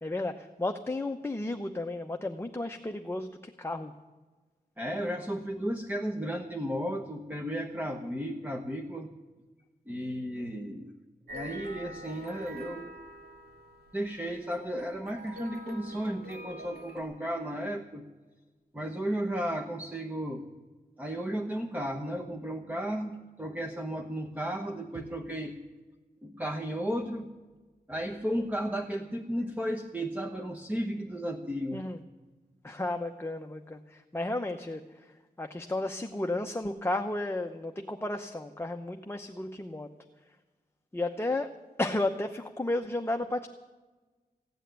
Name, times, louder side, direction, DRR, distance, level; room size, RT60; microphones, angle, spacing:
voice 1, 0.0-3.9 31.7-32.0 32.6-39.9 40.9-43.5, left 2 dB, 15° left, 5 dB, 0.8 m, -33 dB
voice 2, 4.8-9.1 9.9-11.0 11.3-12.9 13.9-18.1 18.7-20.5 21.0-25.6 26.2-27.3 27.9-31.9, equal, 10° right, 3 dB, 1.1 m, -34 dB
sound 1, 11.3-17.0, equal, 85° right, 2.2 m, -46 dB
16.0 x 9.1 x 9.1 m, 1.3 s
wide cardioid pair, 95°, 16 cm